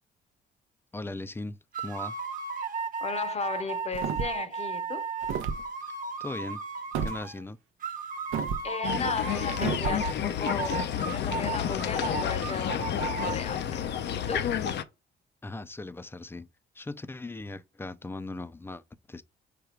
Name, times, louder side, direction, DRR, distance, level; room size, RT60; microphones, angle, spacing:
voice 1, 0.9-2.2 5.9-6.6 7.0-7.6 15.4-16.5 16.7-18.8 19.1-19.2, left 2 dB, 10° left, 0.4 m, -38 dB
sound 1, 1.7-7.4 7.8-10.2 10.4-13.4, right 5 dB, 45° right, 1.0 m, -35 dB
voice 2, 3.0-5.1 8.6-13.9 14.1-14.5, left 5 dB, 35° left, 0.7 m, -35 dB
sound 2, 3.9-4.5 5.2-5.6 6.9-7.2 8.3-8.7 9.6-10.0, right 7 dB, 90° right, 0.6 m, -31 dB
sound 3, 8.8-14.8, left 9 dB, 60° left, 0.5 m, -30 dB
5.1 x 2.2 x 4.5 m
cardioid pair, 90°, 20 cm